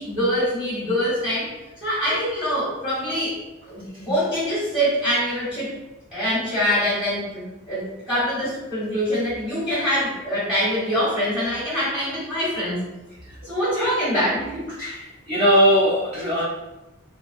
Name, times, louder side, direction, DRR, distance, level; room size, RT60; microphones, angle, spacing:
voice 1, 0.0-1.5 1.8-3.4 3.7-5.7 6.1-12.8 13.4-14.7, equal, 5° right, -11 dB, 1.0 m, -24 dB
voice 2, 14.8-16.4, equal, 45° right, -9 dB, 0.7 m, -20 dB
2.6 x 2.2 x 2.4 m, 1.1 s
head